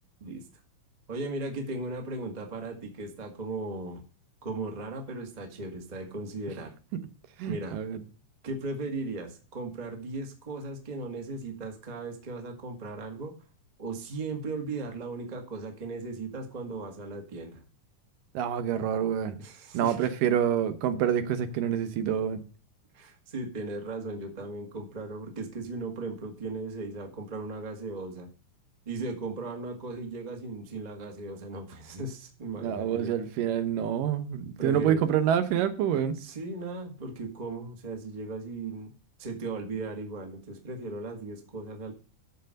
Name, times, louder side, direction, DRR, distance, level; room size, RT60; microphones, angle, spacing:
voice 1, 1.1-4.0 4.4-6.7 7.5-7.8 8.4-13.3 13.8-17.6 19.4-20.1 22.9-28.3 28.8-33.1 34.6-35.0 36.1-38.9 39.2-41.9, right 3 dB, 20° right, 1.1 m, -37 dB
voice 2, 7.4-8.0 18.3-19.4 19.7-22.4 32.6-36.2, right 9 dB, 85° right, 2.6 m, -27 dB
13.0 x 4.6 x 6.4 m
omnidirectional pair, 3.8 m